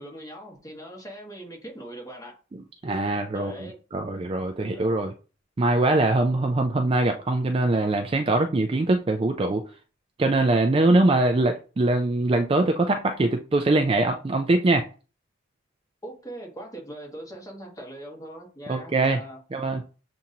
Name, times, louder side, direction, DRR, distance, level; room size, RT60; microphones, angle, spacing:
voice 1, 0.0-2.3 3.3-3.7 4.7-5.1 6.3-6.4 16.0-19.4, right 1 dB, 15° left, -2 dB, 1.5 m, -41 dB
voice 2, 2.8-3.5 3.9-5.1 5.6-9.6 10.2-14.9 18.7-19.2 19.5-19.8, right 2 dB, 25° right, 5 dB, 0.3 m, -22 dB
7.2 x 2.6 x 2.8 m, 0.34 s
head